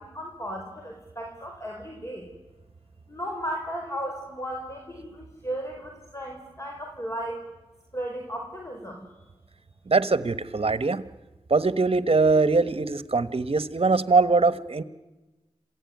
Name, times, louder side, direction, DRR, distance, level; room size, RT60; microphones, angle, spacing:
voice 1, 0.0-2.2 3.1-7.4 7.9-9.0, equal, 25° left, 1 dB, 4.7 m, -35 dB
voice 2, 9.9-11.0 11.5-14.8, right 3 dB, 55° right, 14 dB, 1.3 m, -22 dB
27.0 x 16.0 x 9.5 m, 1.1 s
cardioid pair, 45°, 12 cm